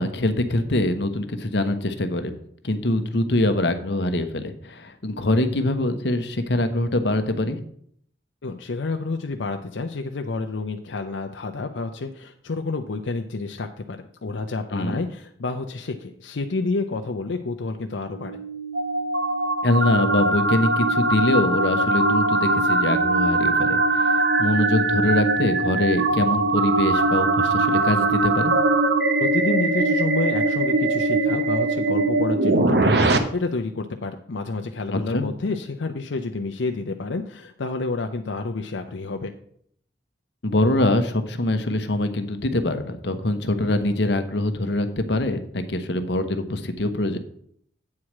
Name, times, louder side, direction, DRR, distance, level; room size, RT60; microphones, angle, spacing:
voice 1, 0.0-2.3 2.6-7.6 14.7-15.0 19.6-28.5 34.9-35.2 40.4-47.2, left 1 dB, 70° left, 9 dB, 1.0 m, -24 dB
voice 2, 8.4-18.4 29.2-39.3, left 3 dB, 90° left, 5 dB, 0.6 m, -29 dB
sound 1, 18.1-33.2, right 2 dB, 65° right, 0.9 m, -21 dB
8.5 x 4.8 x 7.3 m, 0.65 s
head